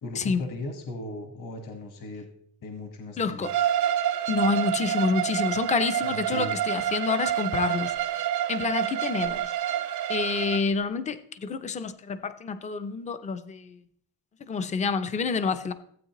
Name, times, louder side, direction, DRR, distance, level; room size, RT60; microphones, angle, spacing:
voice 1, 0.0-2.3 2.6-3.7 6.0-6.6, left 2 dB, 45° left, 1.4 m, -37 dB
voice 2, 3.2-3.5 4.3-8.0 8.5-9.5 10.1-13.8 14.5-15.7, left 5 dB, 15° left, 0.4 m, -28 dB
Bowed string instrument, 3.4-10.6, right 11 dB, 45° right, 0.5 m, -28 dB
15.5 x 8.6 x 2.9 m
cardioid pair, 155°, 44 cm